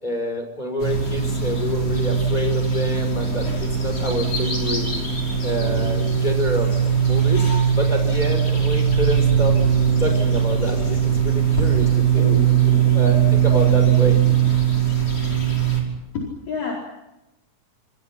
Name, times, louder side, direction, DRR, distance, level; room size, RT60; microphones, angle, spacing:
voice 1, 0.0-4.9 5.4-7.4 7.7-9.6 10.0-12.4 12.9-14.3, equal, 15° left, 4 dB, 5.6 m, -27 dB
sound 1, 0.8-15.8, right 7 dB, 50° left, 6.9 m, -20 dB
voice 2, 16.1-16.7, left 4 dB, 70° left, -3 dB, 6.1 m, -28 dB
28.5 x 26.5 x 6.0 m, 0.93 s
omnidirectional pair, 3.4 m